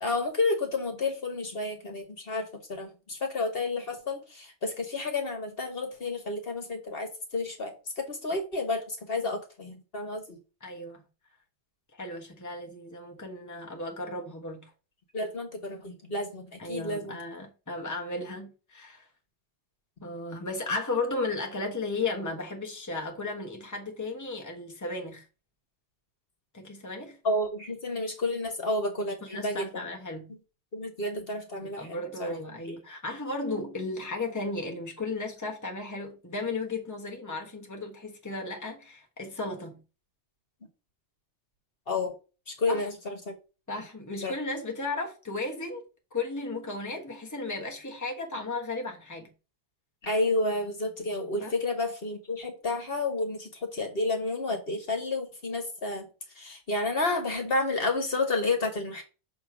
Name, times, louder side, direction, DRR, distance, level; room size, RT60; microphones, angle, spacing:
voice 1, 0.0-10.4 15.1-17.2 27.2-29.7 30.7-32.3 41.9-42.1 42.5-43.3 44.2-44.3 50.0-56.0 56.4-59.0, left 2 dB, 55° left, 1.6 m, -31 dB
voice 2, 10.6-11.0 11.9-14.7 16.6-19.1 20.0-25.2 26.5-27.2 29.3-30.3 31.6-39.8 42.6-42.9 43.7-45.8 46.1-49.3 51.4-51.5, left 2 dB, 15° left, 1.3 m, -35 dB
6.8 x 3.1 x 5.9 m
omnidirectional pair, 1.2 m